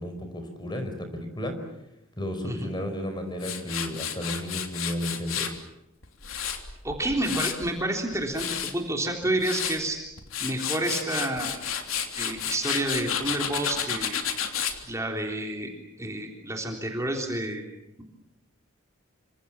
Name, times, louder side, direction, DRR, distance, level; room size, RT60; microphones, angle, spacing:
voice 1, 0.0-1.6 2.2-5.5, equal, 20° left, 7 dB, 5.0 m, -33 dB
Tools, 3.4-5.6 6.0-7.7 8.1-8.7 9.2-9.8 10.2-14.8, left 8 dB, 80° left, 3.2 m, -31 dB
voice 2, 6.8-8.5 8.7-10.0 10.4-11.7 12.2-14.2 14.9-15.7 16.0-17.6, right 1 dB, 15° right, 1 dB, 3.6 m, -29 dB
28.0 x 26.5 x 7.5 m, 0.87 s
head